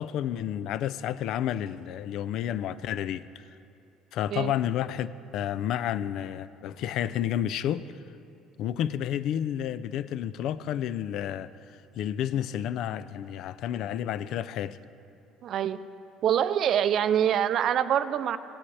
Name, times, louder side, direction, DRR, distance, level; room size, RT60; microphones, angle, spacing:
voice 1, 0.0-3.3 4.1-5.1 5.3-7.9 8.6-11.6 11.9-14.8, left 10 dB, 70° left, 0.3 m, -30 dB
voice 2, 15.4-15.8 16.2-18.4, right 9 dB, 55° right, 0.4 m, -25 dB
16.5 x 8.5 x 3.3 m
cardioid pair, 110°, 0 cm